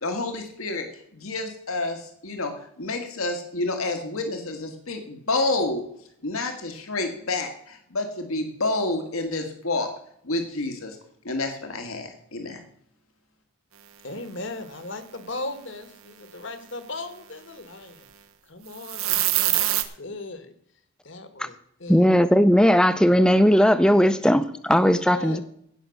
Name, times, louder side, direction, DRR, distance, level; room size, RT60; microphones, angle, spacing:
voice 1, 0.0-0.9 1.1-5.8 6.2-9.9 10.2-11.0 11.2-12.6, left 2 dB, 80° left, 1.9 m, -29 dB
voice 2, 14.0-18.1 18.4-20.5 21.0-22.1 24.9-25.4, left 2 dB, 60° left, 1.5 m, -37 dB
sound 1, 18.8-19.8, right 13 dB, 80° right, 1.1 m, -23 dB
voice 3, 21.9-25.4, equal, 5° left, 0.6 m, -18 dB
16.5 x 6.0 x 6.5 m
head